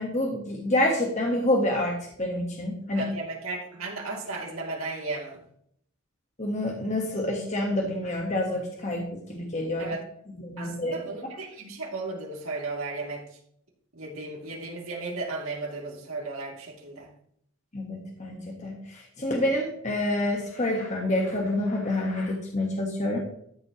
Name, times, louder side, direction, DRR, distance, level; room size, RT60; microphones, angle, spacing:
voice 1, 0.0-3.0 6.4-9.9 10.4-10.9 17.7-23.2, left 1 dB, 35° left, 0 dB, 1.5 m, -28 dB
voice 2, 2.9-5.4 9.8-10.0 10.6-13.2 13.9-17.1, right 3 dB, 80° right, -1 dB, 2.9 m, -35 dB
13.0 x 7.5 x 3.1 m, 0.68 s
head